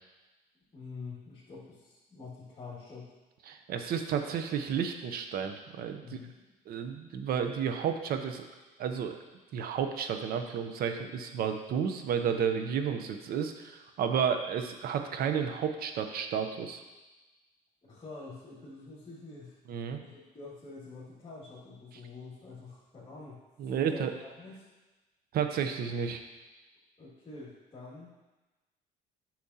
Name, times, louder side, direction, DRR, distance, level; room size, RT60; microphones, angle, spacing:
voice 1, 0.7-3.1 6.0-6.4 17.8-19.6 19.9-24.6 27.0-28.1, left 3 dB, 30° left, -11 dB, 2.1 m, -46 dB
voice 2, 3.5-6.2 6.7-8.4 8.8-9.2 9.5-16.8 19.7-20.0 23.6-24.1 25.3-26.2, right 7 dB, 65° right, 7 dB, 0.7 m, -32 dB
8.6 x 5.9 x 2.8 m, 1.2 s
cardioid pair, 110°, 17 cm